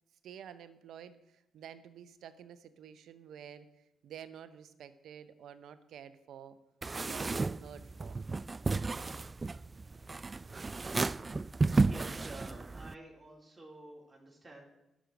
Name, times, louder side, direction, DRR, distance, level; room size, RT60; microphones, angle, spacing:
voice 1, 0.2-3.7 4.0-6.6 6.9-8.2, right 9 dB, 70° right, 13 dB, 0.8 m, -50 dB
sound 1, 6.8-12.9, right 3 dB, 35° right, 0.3 m, -33 dB
voice 2, 11.8-14.6, right 1 dB, 15° right, -4 dB, 3.8 m, -51 dB
11.5 x 6.3 x 7.8 m, 0.91 s
hypercardioid pair, 45°, 0 cm